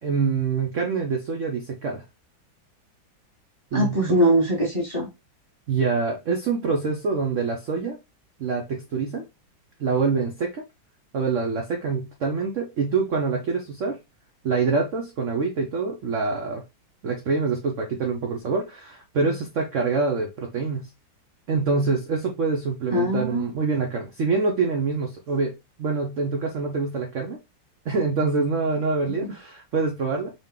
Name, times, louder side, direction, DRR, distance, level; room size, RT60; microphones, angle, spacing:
voice 1, 0.0-2.0 3.7-4.0 5.7-8.0 8.4-9.2 9.8-10.6 11.1-14.0 14.4-16.6 17.0-20.9 21.5-25.5 25.8-27.4 27.8-30.3, right 4 dB, 65° right, 0.7 m, -25 dB
voice 2, 3.7-5.1 22.9-23.5 29.2-29.3, equal, 20° left, 1.1 m, -22 dB
4.0 x 2.4 x 3.6 m
omnidirectional pair, 2.2 m